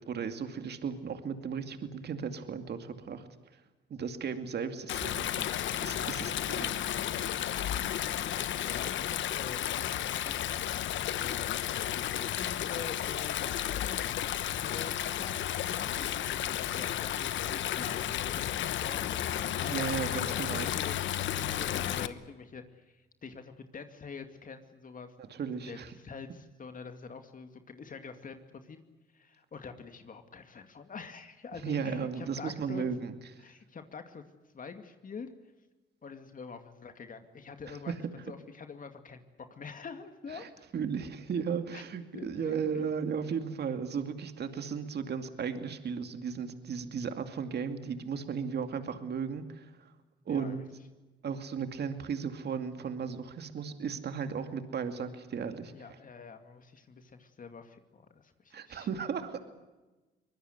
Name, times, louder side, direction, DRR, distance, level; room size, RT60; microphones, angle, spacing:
voice 1, 0.0-3.3 3.9-6.8 19.6-20.7 25.3-25.9 31.6-33.4 37.7-37.9 40.3-40.5 40.7-49.9 50.3-50.6 51.2-55.7 58.5-59.4, right 6 dB, 55° right, 8 dB, 2.5 m, -35 dB
Stream, 4.9-22.1, left 11 dB, 70° left, 1.1 m, -33 dB
voice 2, 8.1-25.1 25.7-28.8 29.1-32.9 33.4-34.2 34.5-35.3 36.0-37.9 38.3-40.4 41.7-41.8 42.1-42.9 50.3-50.6 55.7-58.9 59.3-59.4, left 5 dB, 45° left, 7 dB, 2.4 m, -46 dB
23.5 x 20.5 x 8.2 m, 1.1 s
cardioid pair, 90°, 20 cm